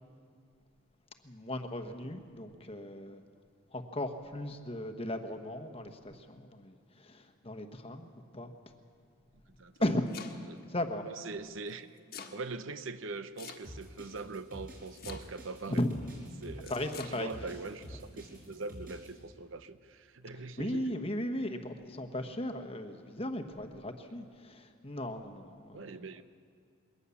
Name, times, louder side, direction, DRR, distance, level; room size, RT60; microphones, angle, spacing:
voice 1, 1.2-3.2 3.7-8.5 9.8-10.1 10.7-11.0 15.7-16.0 16.7-17.4 20.6-25.9, left 1 dB, 25° left, 7 dB, 1.2 m, -36 dB
Domestic sounds home sounds, 9.6-10.6 11.7-12.4 13.4-14.0 14.9-15.6 16.6-17.2, left 6 dB, 45° left, 1.5 m, -47 dB
voice 2, 11.1-15.8 16.4-16.7 17.1-20.9 25.7-26.2, right 3 dB, 65° right, 12 dB, 0.7 m, -42 dB
sound 1, 13.6-19.1, equal, 45° right, 5.4 m, -48 dB
22.0 x 18.0 x 7.1 m, 2.1 s
head